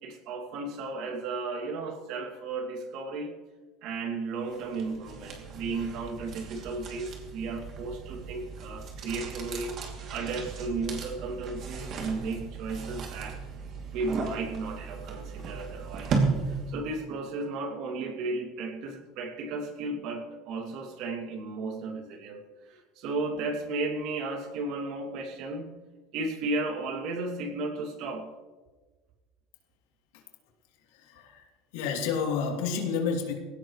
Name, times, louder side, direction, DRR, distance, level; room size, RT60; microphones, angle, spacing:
voice 1, 0.0-3.3 3.8-9.7 10.1-13.4 13.9-25.7 26.1-28.3, right 3 dB, 55° right, 3 dB, 2.6 m, -34 dB
sound 1, 4.5-16.9, right 4 dB, 40° right, 2.8 m, -35 dB
voice 2, 30.9-31.5 31.7-33.4, left 6 dB, 90° left, 1 dB, 3.0 m, -30 dB
19.5 x 17.0 x 3.2 m, 1.3 s
cardioid pair, 160°, 0 cm